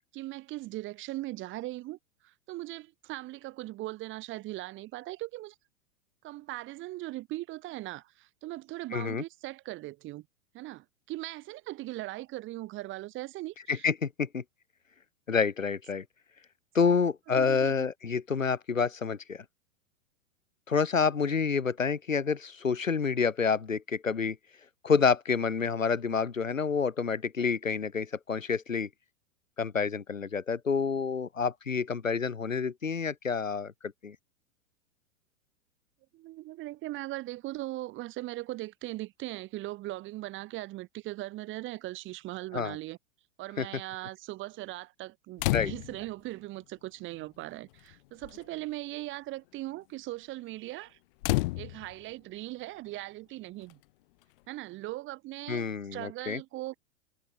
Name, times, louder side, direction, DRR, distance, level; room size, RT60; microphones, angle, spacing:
voice 1, 0.1-2.0 2.2-5.5 6.2-10.3 10.5-13.9 17.3-17.9 36.1-43.0 43.4-51.0 51.6-53.8 54.5-56.8, right 17 dB, 30° right, 2.7 m, -39 dB
voice 2, 8.9-9.2 13.7-14.4 15.3-16.0 16.7-19.4 20.7-24.4 24.8-28.9 29.6-34.2 42.5-42.8 43.6-43.7 45.5-45.7 55.5-56.4, left 5 dB, 75° left, 4.7 m, -28 dB
sound 1, 45.4-46.1 47.2-47.3 47.6-47.9 48.2-48.5 51.2-52.1 53.7-53.8, left 21 dB, 40° left, 2.0 m, -30 dB
figure-of-eight pair, 100°, 40 cm